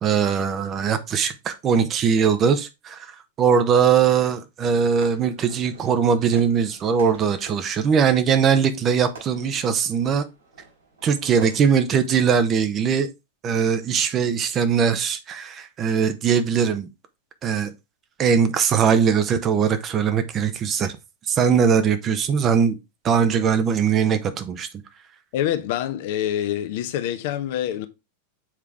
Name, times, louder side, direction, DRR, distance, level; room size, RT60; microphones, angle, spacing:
voice 1, 0.0-10.2 11.0-13.1 13.4-16.9 17.4-17.7 18.2-21.0 21.2-22.8 23.0-24.7, right 7 dB, 30° right, 0.9 m, -21 dB
Fireworks, 4.6-12.7, right 4 dB, 70° right, 4.6 m, -47 dB
voice 2, 25.3-27.9, left 11 dB, 50° left, 0.8 m, -26 dB
7.4 x 4.7 x 3.5 m
figure-of-eight pair, 90°, 0 cm